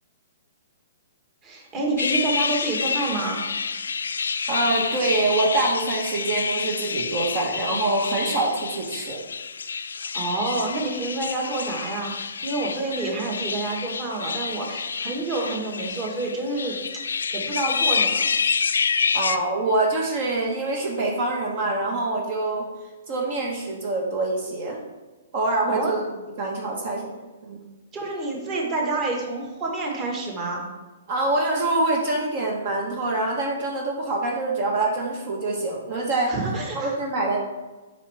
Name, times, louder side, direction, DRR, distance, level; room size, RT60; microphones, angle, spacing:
voice 1, 1.4-3.4 10.0-16.8 17.1-18.3 25.7-25.9 27.9-30.6 36.3-37.0, right 2 dB, 25° right, -1 dB, 1.6 m, -28 dB
sound 1, 2.0-19.4, left 5 dB, 85° left, 0.4 m, -28 dB
voice 2, 4.5-9.2 19.1-22.6 23.1-24.8 25.3-26.0 26.4-27.1 27.4-27.6 31.1-36.3 36.7-37.4, right 2 dB, 50° right, -1 dB, 1.3 m, -25 dB
7.3 x 5.4 x 3.5 m, 1.2 s
hypercardioid pair, 140°, 0 cm